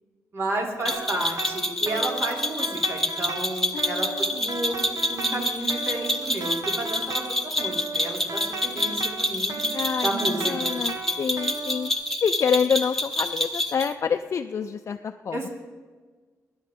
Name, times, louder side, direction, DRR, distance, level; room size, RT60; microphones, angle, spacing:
voice 1, 0.3-4.1 4.4-7.2 7.5-9.6 10.0-10.8 15.3-15.5, right 2 dB, 55° right, -1 dB, 2.9 m, -31 dB
sound 1, 0.9-13.9, left 1 dB, 5° left, 1.1 m, -28 dB
sound 2, 0.9-11.9, right 4 dB, 75° right, 1.2 m, -37 dB
voice 2, 3.7-4.6 9.7-10.1 10.4-11.9 12.2-15.5, left 6 dB, 55° left, 5 dB, 0.4 m, -27 dB
20.0 x 10.5 x 3.6 m, 1.4 s
cardioid pair, 95°, 6 cm